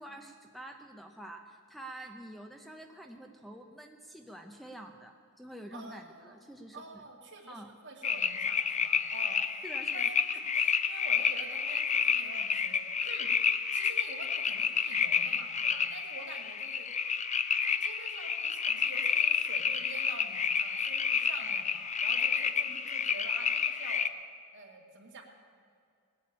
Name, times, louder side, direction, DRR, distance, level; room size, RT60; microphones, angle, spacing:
voice 1, 0.0-6.8 7.5-7.7 9.6-10.1 22.7-22.8, right 1 dB, ahead, 4 dB, 0.7 m, -47 dB
voice 2, 5.7-6.5 6.7-13.3 13.7-16.9 17.6-24.0 24.5-25.2, right 3 dB, 55° right, 0 dB, 2.3 m, -48 dB
sound 1, 8.0-24.1, left 6 dB, 30° left, 0.6 m, -30 dB
19.0 x 8.5 x 8.6 m, 2.2 s
head